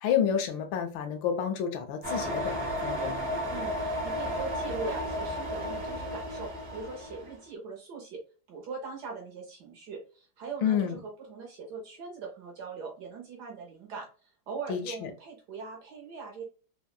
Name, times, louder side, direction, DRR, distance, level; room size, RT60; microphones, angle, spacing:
voice 1, 0.0-3.3 10.6-11.0 14.7-15.1, left 8 dB, 75° left, 6 dB, 1.3 m, -29 dB
sound 1, 2.0-7.3, equal, 45° right, 0.8 m, -33 dB
voice 2, 3.5-8.2 8.5-16.4, right 4 dB, 65° right, 1 dB, 1.1 m, -41 dB
3.6 x 2.0 x 2.3 m, 0.38 s
omnidirectional pair, 2.2 m